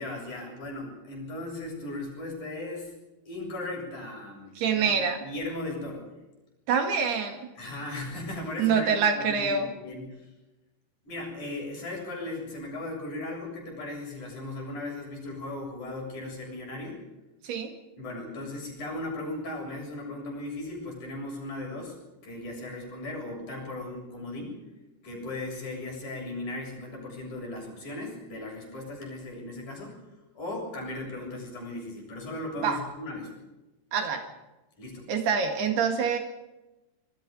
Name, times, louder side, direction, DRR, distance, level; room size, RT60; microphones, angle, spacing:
voice 1, 0.0-2.9 3.3-5.0 5.2-6.1 7.6-10.3 11.1-17.0 18.0-22.0 22.2-24.6 25.0-30.0 30.4-33.3 34.8-35.0, left 2 dB, 45° left, 0 dB, 8.8 m, -37 dB
voice 2, 4.6-5.2 6.7-7.4 8.6-9.7 17.5-17.7 32.6-32.8 33.9-34.2 35.1-36.2, right 6 dB, 65° right, 5 dB, 3.7 m, -25 dB
26.5 x 22.5 x 5.4 m, 1.0 s
omnidirectional pair, 5.2 m